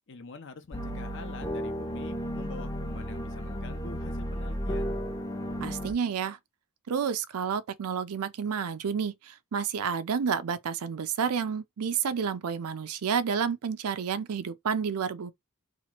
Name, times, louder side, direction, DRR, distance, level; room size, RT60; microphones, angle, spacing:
voice 1, 0.1-5.0, left 4 dB, 55° left, 0.6 m, -45 dB
sound 1, 0.7-5.9, equal, 15° left, 0.6 m, -34 dB
voice 2, 5.6-6.4 6.9-15.3, right 6 dB, 80° right, 0.5 m, -30 dB
2.9 x 2.4 x 2.9 m
head